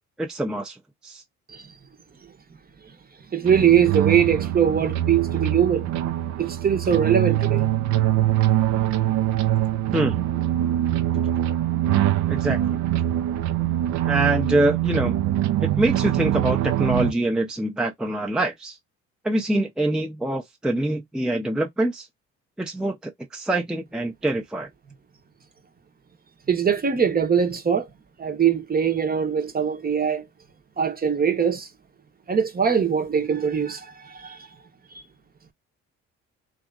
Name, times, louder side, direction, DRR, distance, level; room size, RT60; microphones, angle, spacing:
voice 1, 0.2-0.8 1.0-1.2 9.9-10.2 12.3-12.8 14.0-15.2 15.6-18.8 19.2-22.1 22.6-24.7, right 1 dB, ahead, 0.5 m, -25 dB
voice 2, 3.3-5.9 6.4-7.7 26.5-27.9 28.2-30.3 30.8-31.7 32.3-34.5, right 8 dB, 30° right, 0.9 m, -22 dB
sound 1, 3.5-17.1, right 13 dB, 70° right, 0.5 m, -23 dB
2.7 x 2.4 x 2.4 m
supercardioid pair, 75°, 30 cm